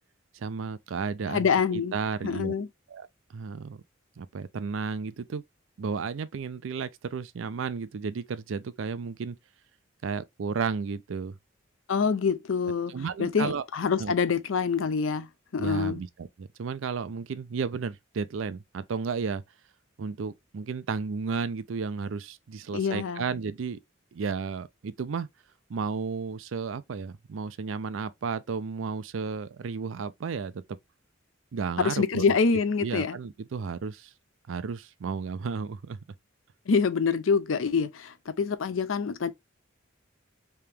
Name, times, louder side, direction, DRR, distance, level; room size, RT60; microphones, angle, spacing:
voice 1, 0.3-2.5 2.9-3.1 3.3-3.8 4.2-5.4 5.8-9.4 10.0-11.3 12.9-13.6 14.0-14.1 15.6-16.1 16.4-19.4 20.0-23.8 24.1-25.3 25.7-30.6 31.5-32.2 32.8-34.1 34.5-36.0, right 5 dB, 70° right, 0.4 m, -33 dB
voice 2, 1.3-1.9 2.2-2.7 11.9-12.9 13.2-16.0 22.7-23.3 31.8-33.2 36.7-39.3, left 5 dB, 80° left, 0.5 m, -26 dB
3.4 x 2.9 x 3.3 m
head